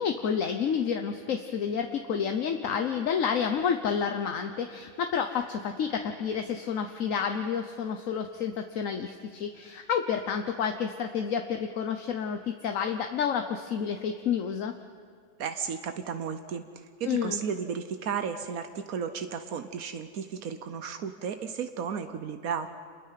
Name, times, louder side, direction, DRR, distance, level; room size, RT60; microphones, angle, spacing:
voice 1, 0.0-14.7 17.0-17.4, left 7 dB, 70° left, 6 dB, 1.3 m, -30 dB
voice 2, 15.4-16.6 17.0-22.7, right 7 dB, 85° right, 8 dB, 1.4 m, -34 dB
27.5 x 21.5 x 5.8 m, 2.1 s
omnidirectional pair, 1.5 m